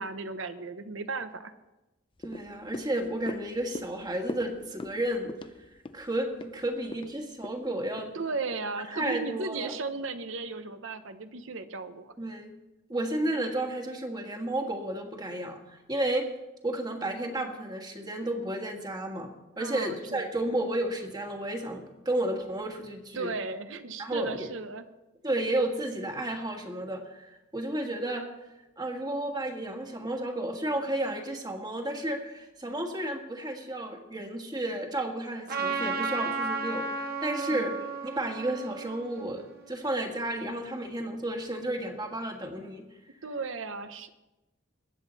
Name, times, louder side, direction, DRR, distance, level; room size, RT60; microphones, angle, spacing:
voice 1, 0.0-1.5 8.1-12.1 19.6-20.3 23.1-24.8 37.4-37.7 43.2-44.1, right 4 dB, 70° right, 10 dB, 0.9 m, -35 dB
sound 1, 2.2-8.7 9.1-9.2, left 2 dB, 25° left, 0.5 m, -42 dB
voice 2, 2.2-5.3 5.9-8.1 8.9-9.8 12.2-12.5 12.9-16.3 16.6-19.3 19.6-23.3 24.0-24.5 25.2-28.3 28.8-42.8, right 1 dB, 20° right, 3 dB, 1.6 m, -32 dB
Trumpet, 35.5-40.1, right 4 dB, 50° right, 1.4 m, -34 dB
21.5 x 8.2 x 4.2 m, 1.0 s
head